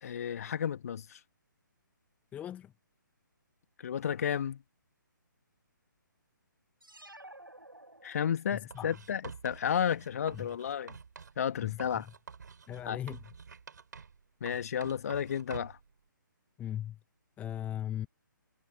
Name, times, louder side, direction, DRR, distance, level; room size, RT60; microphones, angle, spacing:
voice 1, 0.0-1.2 3.8-4.6 8.0-10.9 11.4-12.0 12.8-13.0 14.4-15.8, left 8 dB, 45° left, 1.8 m, -32 dB
voice 2, 2.3-2.7 8.5-9.0 10.3-10.5 11.6-12.1 12.7-13.3 16.6-17.0 17.4-18.1, left 11 dB, 15° left, 1.8 m, -39 dB
sound 1, 6.8-8.7, right 1 dB, 90° right, 7.5 m, -52 dB
Writing, 8.7-11.4 11.8-14.2 14.5-15.9, right 5 dB, 60° right, 6.7 m, -48 dB
figure-of-eight pair, 135°, 11 cm